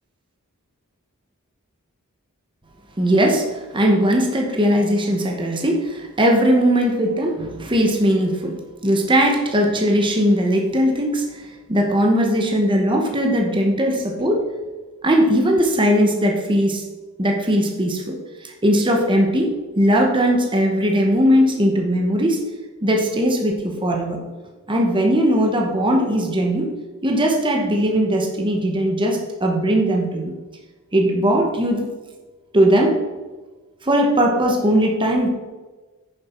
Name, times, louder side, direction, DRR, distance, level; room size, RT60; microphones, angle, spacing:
voice 1, 3.0-8.5 8.8-11.4 11.7-14.5 15.0-16.8 17.2-18.2 18.4-22.4 22.8-24.2 24.7-26.7 27.0-30.3 30.9-31.9 32.5-33.0 33.8-35.3, equal, 20° right, 1 dB, 1.1 m, -19 dB
9.7 x 7.0 x 4.5 m, 1.3 s
head